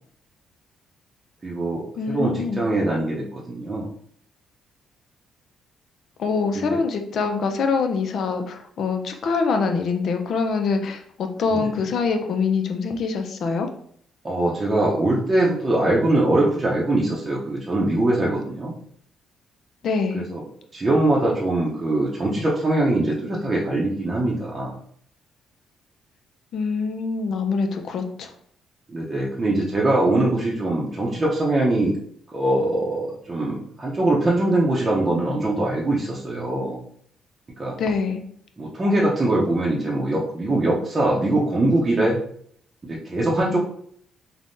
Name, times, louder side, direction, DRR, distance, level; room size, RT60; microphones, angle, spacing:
voice 1, 1.4-3.9 6.5-6.8 11.5-11.7 14.2-18.7 20.1-20.4 20.7-24.7 28.9-32.0 32.3-36.8 37.6-37.7 38.6-42.2 42.8-43.6, right 1 dB, 30° right, -4 dB, 0.6 m, -22 dB
voice 2, 2.0-2.6 6.2-13.7 19.8-20.2 26.5-28.3 37.7-38.2, left 4 dB, 65° left, 5 dB, 0.5 m, -24 dB
3.4 x 2.1 x 2.6 m, 0.63 s
cardioid pair, 90°, 0 cm